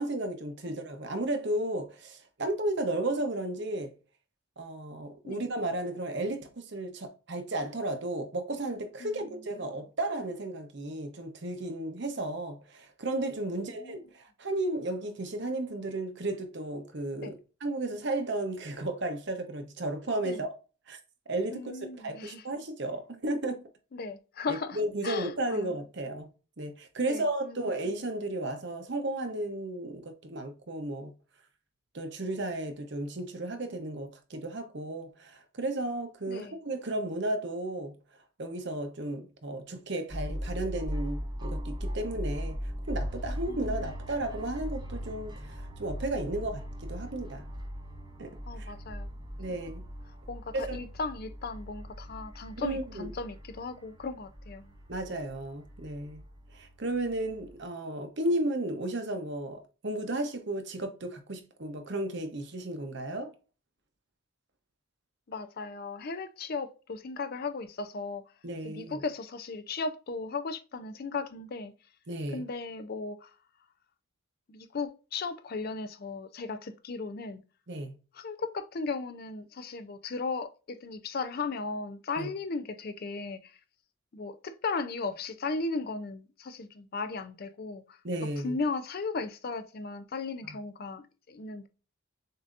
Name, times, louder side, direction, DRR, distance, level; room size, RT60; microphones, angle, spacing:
voice 1, 0.0-3.9 4.6-17.3 17.6-20.5 20.9-21.0 21.3-23.6 24.5-31.1 31.9-37.9 38.4-42.6 42.9-47.4 48.2-48.7 49.4-49.9 50.5-50.8 52.6-53.1 54.9-56.2 56.5-63.3 68.4-69.0 72.1-72.4 77.7-78.0 82.2-82.3 88.0-88.6 90.4-90.6, right 1 dB, 55° right, 0.8 m, -34 dB
voice 2, 13.5-14.0 17.2-17.3 20.2-20.4 21.5-22.4 23.9-25.7 27.0-27.6 36.3-36.5 43.5-43.9 48.5-49.1 50.3-54.7 65.3-68.2 68.6-71.7 72.3-73.3 74.5-77.4 78.1-83.6 84.1-88.0 88.4-91.7, left 4 dB, 45° left, 0.4 m, -36 dB
sound 1, 40.1-57.6, equal, 20° right, 0.8 m, -39 dB
6.6 x 2.7 x 2.5 m
head